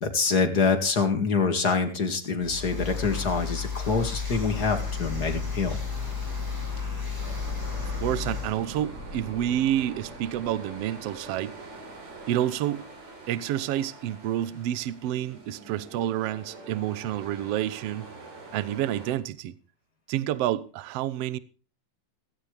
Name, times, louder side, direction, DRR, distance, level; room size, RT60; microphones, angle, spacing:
voice 1, 0.0-5.8, left 4 dB, 35° left, 2.1 m, -25 dB
sound 1, 2.4-8.6, left 6 dB, 5° right, 5.5 m, -32 dB
sound 2, 4.0-12.8 13.0-13.1, right 1 dB, 30° right, 3.1 m, -43 dB
sound 3, 7.2-19.2, right 3 dB, 60° right, 4.9 m, -45 dB
voice 2, 7.8-11.5 12.3-12.8 13.3-18.1 18.5-19.5 20.1-21.4, right 12 dB, 85° right, 1.4 m, -29 dB
16.5 x 16.0 x 3.3 m
omnidirectional pair, 3.8 m